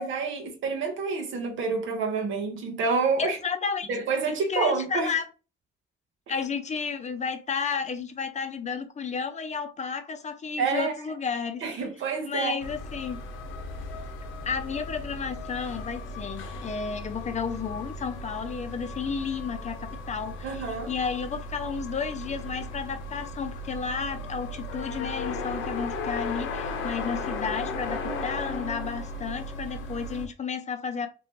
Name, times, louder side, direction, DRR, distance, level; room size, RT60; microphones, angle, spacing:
voice 1, 0.0-3.4 3.9-5.1 10.6-10.9 11.6-12.5 20.4-20.9, right 4 dB, 75° right, 1.1 m, -28 dB
voice 2, 3.2-3.9 4.3-5.2 6.3-11.8 12.2-13.2 14.4-31.1, left 6 dB, 35° left, 0.5 m, -32 dB
sound 1, 12.6-30.3, left 2 dB, 80° left, 0.7 m, -36 dB
3.1 x 3.0 x 3.0 m
cardioid pair, 90°, 20 cm